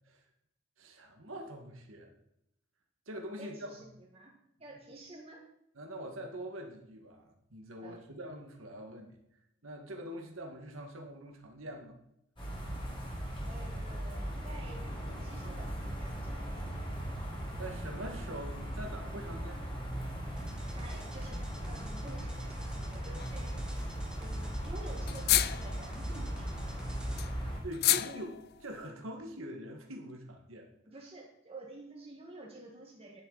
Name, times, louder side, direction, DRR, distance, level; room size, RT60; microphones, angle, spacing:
voice 1, 0.8-2.1 3.1-3.7 5.7-7.2 7.5-9.2 9.6-11.9 17.6-19.6 27.6-30.7, right 1 dB, 80° right, 2 dB, 1.9 m, -44 dB
voice 2, 3.4-4.3 4.6-5.4 7.8-8.0 13.5-16.6 20.7-26.5 30.8-33.2, right 2 dB, 30° right, -2 dB, 1.7 m, -50 dB
sound 1, 12.4-27.6, equal, 25° left, 3.5 m, -38 dB
sound 2, 20.4-27.2, equal, 5° right, 1.5 m, -51 dB
sound 3, 23.2-23.6 23.8-23.9 24.1-24.2 24.5-24.6 25.0-26.0 26.6-28.7, left 14 dB, 50° left, 0.4 m, -30 dB
11.0 x 10.5 x 4.1 m, 0.79 s
head